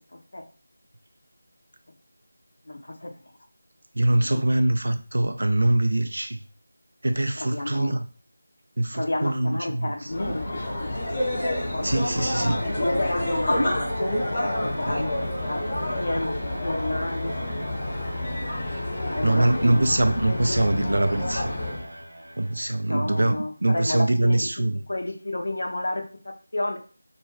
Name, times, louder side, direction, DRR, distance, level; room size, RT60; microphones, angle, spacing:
voice 1, 0.1-0.4 2.7-3.1 4.1-4.4 7.4-8.0 8.9-10.9 11.7-11.9 12.3-13.8 14.6-17.4 18.5-18.6 19.1-20.6 22.9-26.8, left 1 dB, 65° left, 0.6 m, -31 dB
voice 2, 3.9-6.4 7.0-8.1 8.8-10.1 11.8-12.6 14.9-15.0 19.2-21.5 22.4-23.4 23.6-24.8, right 1 dB, 70° right, 0.3 m, -23 dB
sound 1, 10.1-21.9, left 1 dB, 30° left, 0.8 m, -28 dB
sound 2, 10.1-23.0, right 1 dB, 85° right, 0.7 m, -41 dB
2.5 x 2.3 x 3.1 m
figure-of-eight pair, 170°, 0 cm